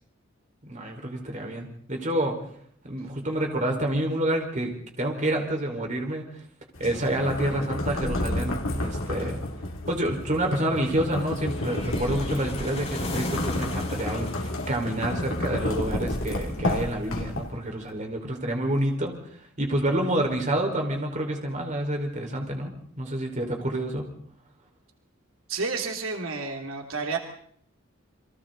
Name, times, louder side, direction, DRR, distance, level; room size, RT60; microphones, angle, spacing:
voice 1, 0.6-2.4 2.8-6.2 6.8-9.4 9.9-19.1 19.6-24.0, right 1 dB, 35° right, 2 dB, 4.9 m, -28 dB
sound 1, 6.7-17.7, left 1 dB, 80° left, 3.1 m, -31 dB
sound 2, 11.4-15.7, left 2 dB, 30° left, 6.2 m, -36 dB
voice 2, 25.5-27.2, right 4 dB, 85° right, 3 dB, 2.9 m, -30 dB
30.0 x 23.5 x 4.1 m, 0.62 s
head